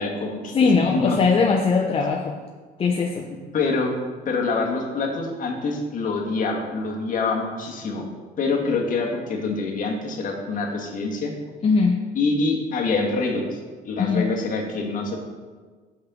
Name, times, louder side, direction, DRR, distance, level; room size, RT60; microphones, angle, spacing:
voice 1, 0.0-1.2 3.5-3.9 4.2-8.1 8.4-11.3 12.1-13.6 13.8-15.2, left 3 dB, 50° left, 0 dB, 1.6 m, -25 dB
voice 2, 0.5-2.4 2.8-3.3 11.6-12.1 14.0-14.3, left 4 dB, 35° left, 3 dB, 0.6 m, -20 dB
5.7 x 5.6 x 6.9 m, 1.5 s
cardioid pair, 110°, 17 cm